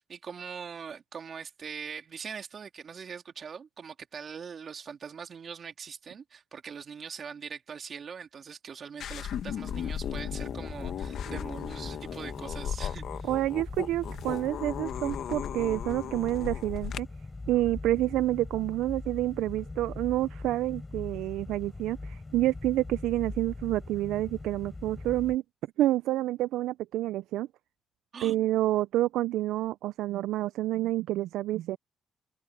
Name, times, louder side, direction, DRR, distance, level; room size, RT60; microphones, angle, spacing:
voice 1, 0.0-13.3 28.1-28.7, right 6 dB, 50° right, 3.3 m, -42 dB
sound 1, 9.0-17.0, left 9 dB, 70° left, 1.4 m, -36 dB
sound 2, 9.7-25.4, left 2 dB, 20° left, 3.9 m, -42 dB
voice 2, 13.3-17.1 17.5-25.4 25.8-27.5 28.2-31.8, right 15 dB, 90° right, 0.3 m, -28 dB
cardioid pair, 90°, 0 cm